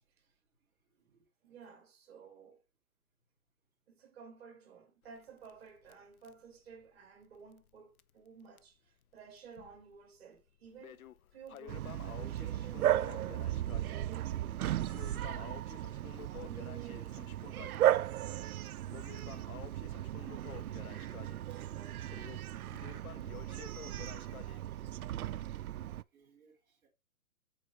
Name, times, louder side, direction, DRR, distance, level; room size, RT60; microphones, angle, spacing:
voice 1, 0.0-1.5 3.6-3.7 21.7-26.9, right 5 dB, 5° right, 1.3 m, -70 dB
voice 2, 0.9-2.6 3.9-11.1 11.3-14.4 14.7-15.1 16.4-17.3 20.1-22.0, right 6 dB, 45° right, 2.0 m, -54 dB
Crackle, 5.0-7.7 8.0-8.1 8.6-8.7 9.4-10.0 10.4-24.6, left 10 dB, 80° left, 0.7 m, -52 dB
Bark, 11.7-26.0, right 12 dB, 90° right, 0.5 m, -36 dB
7.9 x 4.7 x 3.3 m
hypercardioid pair, 170°, 42 cm